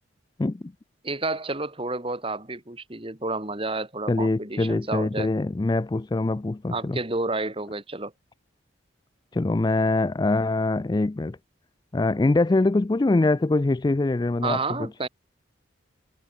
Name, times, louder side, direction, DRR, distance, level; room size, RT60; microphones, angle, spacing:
voice 1, 0.4-0.7 4.1-7.0 9.3-11.4 11.9-14.9, left 2 dB, 20° left, 0.3 m, -23 dB
voice 2, 1.0-5.3 6.7-8.1 14.4-15.1, right 3 dB, 30° right, 2.0 m, -30 dB
head